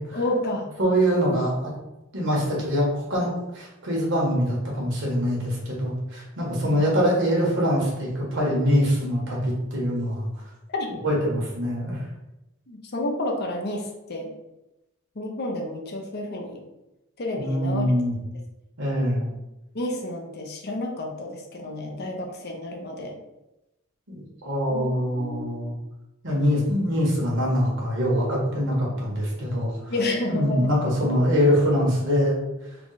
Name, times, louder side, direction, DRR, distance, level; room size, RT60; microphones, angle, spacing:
voice 1, 0.1-0.7 6.6-6.8 10.7-10.9 12.7-14.3 15.2-16.6 17.2-17.9 19.7-23.1 24.7-25.6 29.9-30.7, left 1 dB, 50° left, 2 dB, 0.6 m, -30 dB
voice 2, 0.8-1.7 2.1-10.3 11.0-12.0 17.4-18.2 18.8-19.3 24.1-25.7 26.2-29.7 30.3-32.4, equal, 60° right, -3 dB, 1.2 m, -24 dB
3.4 x 2.4 x 4.0 m, 0.94 s
head